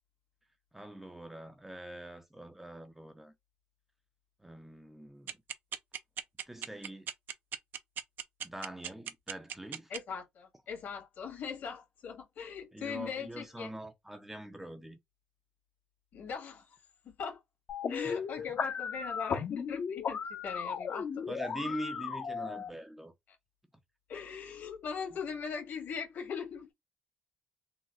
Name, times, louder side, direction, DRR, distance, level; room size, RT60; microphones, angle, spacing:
voice 1, 0.7-3.3 4.4-5.4 6.5-7.1 8.4-9.9 12.7-15.0 18.0-18.2 21.3-23.1, right 1 dB, 10° right, 0.4 m, -43 dB
sound 1, 5.3-10.0, right 9 dB, 70° right, 0.4 m, -37 dB
voice 2, 9.9-13.7 16.1-16.8 17.0-17.4 17.9-21.3 24.1-26.7, left 6 dB, 70° left, 1.7 m, -40 dB
sound 2, 17.7-22.7, left 6 dB, 55° left, 0.6 m, -36 dB
3.9 x 2.0 x 2.3 m
cardioid pair, 125°, 4 cm